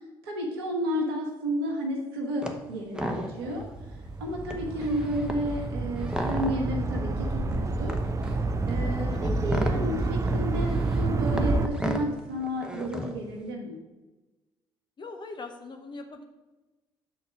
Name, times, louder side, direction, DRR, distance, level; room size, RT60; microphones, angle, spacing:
voice 1, 0.2-3.6 4.2-8.0 8.7-13.8, equal, 80° right, 0 dB, 1.0 m, -32 dB
sound 1, 2.4-2.6 2.9-3.6 4.0-4.1 4.4-6.8 7.5-13.3, equal, 5° right, 1.0 m, -34 dB
sound 2, 3.4-11.8, left 1 dB, 85° left, 2.5 m, -42 dB
sound 3, 3.7-11.7, right 3 dB, 25° right, 0.5 m, -29 dB
voice 2, 4.7-5.1 9.1-9.3 15.0-16.2, left 3 dB, 40° left, 5 dB, 0.8 m, -42 dB
6.4 x 4.0 x 5.9 m, 1.1 s
figure-of-eight pair, 50°, 12 cm